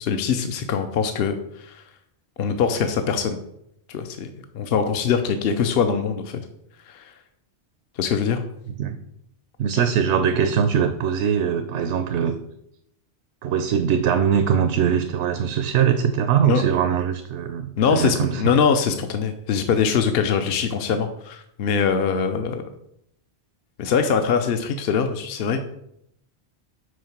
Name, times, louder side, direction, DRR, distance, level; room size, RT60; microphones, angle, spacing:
voice 1, 0.0-1.8 2.4-3.4 3.9-4.3 4.5-6.4 6.9-7.1 8.0-8.4 9.7-9.8 16.4-16.6 17.8-22.7 23.8-25.6, left 6 dB, 65° left, 7 dB, 0.8 m, -23 dB
voice 2, 9.6-12.4 13.4-18.4, right 8 dB, 85° right, 8 dB, 0.9 m, -21 dB
6.3 x 4.6 x 5.9 m, 0.76 s
omnidirectional pair, 1.1 m